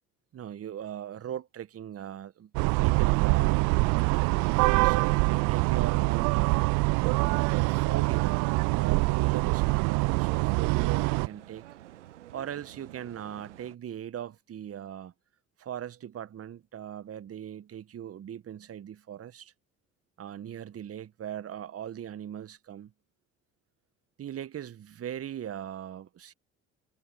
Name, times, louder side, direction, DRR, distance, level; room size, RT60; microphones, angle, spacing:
voice 1, 0.3-2.5 2.8-4.5 4.8-6.7 7.2-8.4 8.7-11.6 12.3-15.1 15.6-19.5 20.2-22.9 24.2-26.3, right 10 dB, 40° right, 1.7 m, -40 dB
sound 1, 2.5-11.3, right 31 dB, 60° right, 0.5 m, -24 dB
sound 2, 4.0-13.8, right 14 dB, 80° right, 0.9 m, -48 dB
figure-of-eight pair, 55°, 35 cm